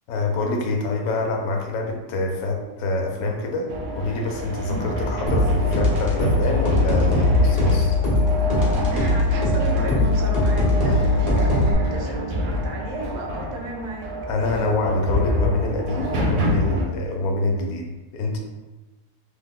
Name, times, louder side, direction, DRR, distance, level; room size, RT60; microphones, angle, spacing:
voice 1, 0.1-7.9 10.8-11.0 14.3-18.4, left 2 dB, 70° left, 2 dB, 1.0 m, -25 dB
sound 1, 3.7-16.9, equal, 65° right, 0.8 m, -27 dB
sound 2, 5.3-11.7, left 2 dB, 40° left, 0.6 m, -20 dB
voice 2, 8.9-14.1, right 2 dB, 80° right, 1 dB, 1.2 m, -33 dB
3.0 x 2.1 x 3.5 m, 1.1 s
omnidirectional pair, 1.7 m